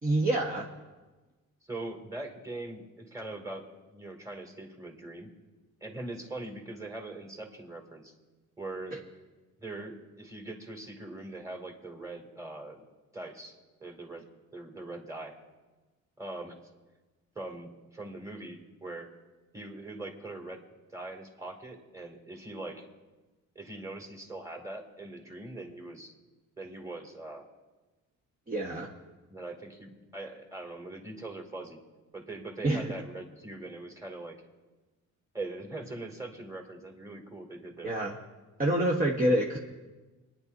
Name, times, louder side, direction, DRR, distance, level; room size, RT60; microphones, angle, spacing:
voice 1, 0.0-0.7 8.9-9.0 28.5-28.9 32.6-32.9 37.8-38.1 38.6-39.6, right 1 dB, 30° right, -2 dB, 1.3 m, -27 dB
voice 2, 1.7-5.3 5.8-8.1 8.6-9.0 9.6-12.8 13.1-15.4 16.2-16.6 17.4-19.1 19.5-20.6 20.9-22.9 23.5-26.1 26.6-27.5 29.3-31.8 32.1-34.4 35.3-37.9, right 2 dB, 10° right, 1 dB, 2.4 m, -42 dB
27.0 x 10.5 x 2.7 m, 1.2 s
cardioid pair, 90°, 30 cm